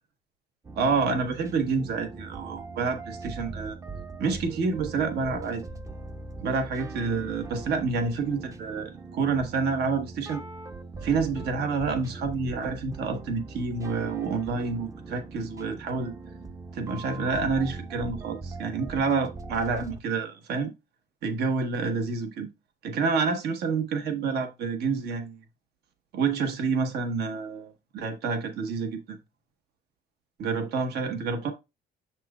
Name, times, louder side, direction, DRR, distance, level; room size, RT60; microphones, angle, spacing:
sound 1, 0.6-20.0, right 3 dB, 20° right, 0.6 m, -41 dB
voice 1, 0.8-3.8 4.2-5.6 6.4-10.4 11.0-16.1 16.7-20.7 21.2-22.5 22.8-25.4 26.1-29.2 30.4-31.5, right 4 dB, 75° right, 1.2 m, -28 dB
7.1 x 5.9 x 2.4 m
cardioid pair, 110°, 17 cm